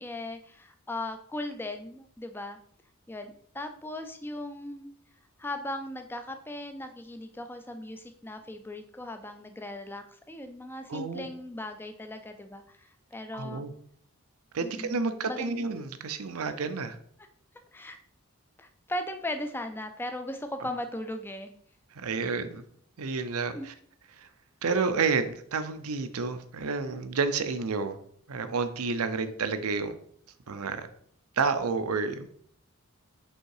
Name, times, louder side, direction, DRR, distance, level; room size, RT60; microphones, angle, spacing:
voice 1, 0.0-2.6 3.1-4.9 5.4-13.6 14.6-15.0 15.3-15.5 17.7-18.0 18.6-21.5 23.5-23.7, left 1 dB, 10° left, 7 dB, 0.4 m, -38 dB
voice 2, 10.9-11.3 13.3-13.7 14.5-17.0 21.9-22.6 23.0-23.7 24.1-24.3 24.6-28.0 28.3-30.0 30.5-30.9 31.4-32.3, right 4 dB, 80° right, 10 dB, 0.6 m, -30 dB
5.4 x 3.7 x 4.7 m, 0.63 s
head